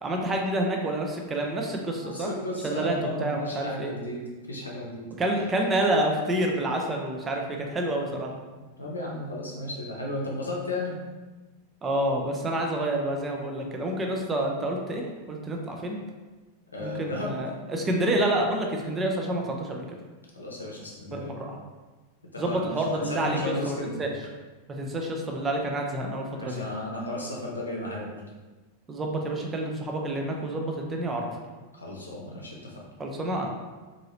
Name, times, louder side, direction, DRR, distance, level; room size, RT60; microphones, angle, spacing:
voice 1, 0.0-2.3 2.6-3.9 5.2-7.4 7.7-8.3 11.8-15.0 15.3-16.0 16.8-19.9 21.1-21.6 22.4-24.1 24.8-26.6 28.9-31.3 33.0-33.5, right 1 dB, 20° right, 1 dB, 0.5 m, -28 dB
voice 2, 2.0-4.2 4.5-5.1 8.8-11.0 16.7-17.4 20.3-21.3 22.3-24.1 26.3-28.2 31.7-32.9, left 1 dB, 80° left, -3 dB, 0.6 m, -34 dB
2.8 x 2.6 x 2.9 m, 1.2 s
figure-of-eight pair, 90°, 0 cm